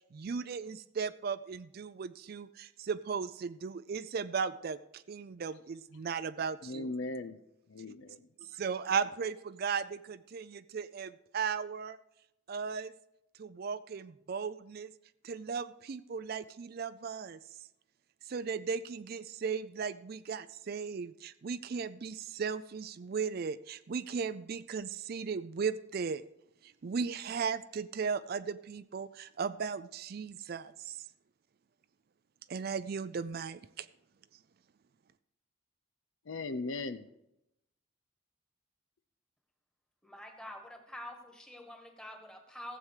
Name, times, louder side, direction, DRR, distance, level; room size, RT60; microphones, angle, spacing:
voice 1, 0.1-6.9 8.5-12.0 12.5-12.9 13.4-14.9 15.2-17.4 18.3-26.2 26.6-31.0 32.5-33.9, right 6 dB, 50° right, 14 dB, 0.4 m, -36 dB
voice 2, 6.6-7.4 7.7-8.3 36.3-37.1, left 2 dB, 80° left, 13 dB, 0.6 m, -38 dB
voice 3, 40.0-42.8, left 1 dB, 5° left, 4 dB, 1.5 m, -47 dB
15.0 x 7.8 x 4.9 m, 0.83 s
head